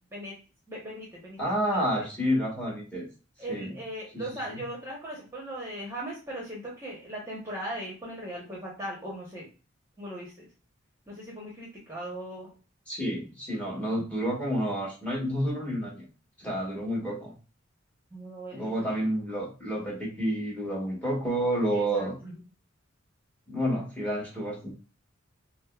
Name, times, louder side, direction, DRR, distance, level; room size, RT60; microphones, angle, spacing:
voice 1, 0.7-1.4 1.7-2.0 3.4-9.5 10.0-10.5 11.1-12.5 18.1-18.7 21.7-22.3, right 1 dB, 15° right, -4 dB, 1.0 m, -39 dB
voice 2, 1.4-3.0 3.5-3.7 4.1-4.2 4.5-4.6 12.9-16.0 16.4-17.3 18.5-22.1 23.5-24.7, equal, 5° left, -2 dB, 1.3 m, -29 dB
6.2 x 2.1 x 2.4 m, 0.34 s
head